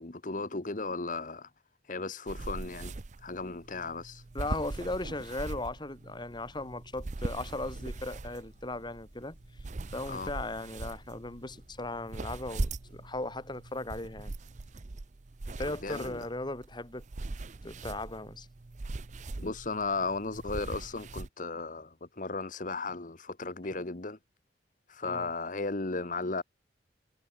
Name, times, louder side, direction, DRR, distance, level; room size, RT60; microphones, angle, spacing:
voice 1, 0.0-1.5 1.8-2.9 3.2-4.2 10.1-10.3 15.8-16.3 19.4-24.2 24.9-26.4, left 3 dB, 45° left, 1.3 m, -35 dB
sound 1, 2.3-21.3, right 2 dB, 45° right, 0.6 m, -41 dB
voice 2, 4.3-9.4 9.9-14.3 15.5-17.0 17.6-18.5 25.0-25.3, left 2 dB, 25° left, 2.2 m, -37 dB
Motor vehicle (road) / Engine, 6.3-13.2, equal, 70° left, 5.2 m, -59 dB
head